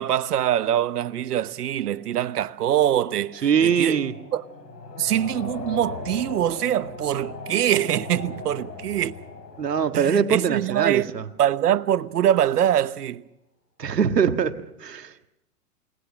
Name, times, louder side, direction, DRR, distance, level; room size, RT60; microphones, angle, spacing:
voice 1, 0.0-4.0 4.3-4.4 5.0-9.1 9.9-11.1 11.4-13.2, right 11 dB, 75° right, 1.1 m, -23 dB
sound 1, 0.7-11.5, left 3 dB, 85° left, 7.6 m, -40 dB
voice 2, 3.4-4.1 9.6-11.2 13.8-15.3, right 7 dB, 90° right, 1.7 m, -22 dB
29.0 x 19.0 x 6.4 m
hypercardioid pair, 125°, 47 cm